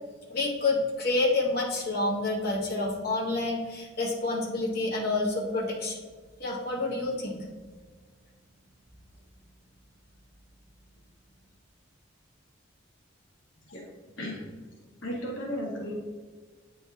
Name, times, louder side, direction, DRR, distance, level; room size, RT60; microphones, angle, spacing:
voice 1, 0.3-6.0 6.4-7.4, left 2 dB, 50° left, -4 dB, 1.7 m, -28 dB
voice 2, 14.2-14.5 15.0-15.9, equal, 70° left, -2 dB, 1.5 m, -34 dB
8.9 x 4.1 x 3.5 m, 1.4 s
head